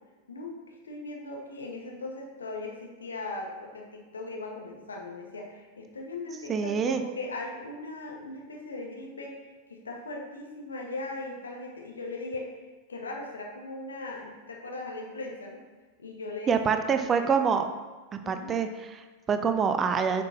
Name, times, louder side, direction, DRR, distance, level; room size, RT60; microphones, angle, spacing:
voice 1, 0.3-12.5 12.9-15.6 16.0-17.4 18.2-18.6, left 2 dB, 70° left, 0 dB, 1.4 m, -39 dB
voice 2, 6.5-7.0 16.5-17.7 18.1-20.2, right 6 dB, 25° right, 7 dB, 0.6 m, -26 dB
9.6 x 5.9 x 2.9 m, 1.3 s
figure-of-eight pair, 90°, 0 cm